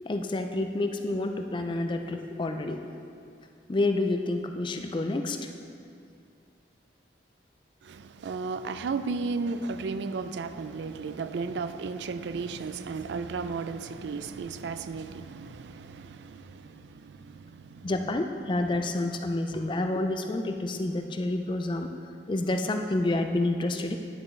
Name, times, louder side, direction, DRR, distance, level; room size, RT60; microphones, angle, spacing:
voice 1, 0.0-2.8 3.7-5.4 17.8-21.9 22.3-24.0, left 2 dB, 25° left, 5 dB, 0.4 m, -29 dB
voice 2, 7.9-17.9, right 4 dB, 75° right, 11 dB, 0.3 m, -34 dB
10.0 x 6.0 x 3.2 m, 2.4 s
head